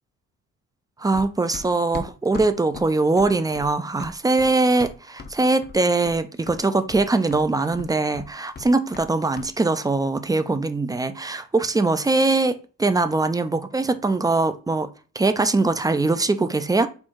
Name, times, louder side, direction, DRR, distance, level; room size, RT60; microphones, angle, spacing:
voice 1, 1.0-14.9 15.1-16.9, right 3 dB, 10° right, 0.4 m, -22 dB
Run, 1.1-5.4 5.6-6.2 6.5-9.1 9.4-9.5, left 4 dB, 35° left, 0.7 m, -39 dB
4.5 x 2.3 x 4.5 m
cardioid pair, 90°, 30 cm